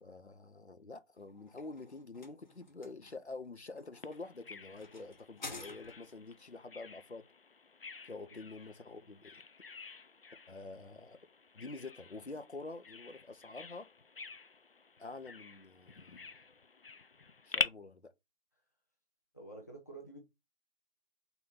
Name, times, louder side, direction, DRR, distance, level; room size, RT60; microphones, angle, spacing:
voice 1, 0.0-7.3 8.0-9.4 10.5-11.2 11.5-13.9 15.0-16.3 17.4-18.1, left 3 dB, 80° left, 1.1 m, -47 dB
sound 1, 1.2-6.3, left 3 dB, 45° left, 1.2 m, -51 dB
Bird vocalization bird call bird song, 4.0-17.7, left 4 dB, 60° left, 0.6 m, -45 dB
voice 2, 19.3-20.2, right 2 dB, 15° left, 0.8 m, -49 dB
4.3 x 4.1 x 5.6 m
figure-of-eight pair, 160°, 33 cm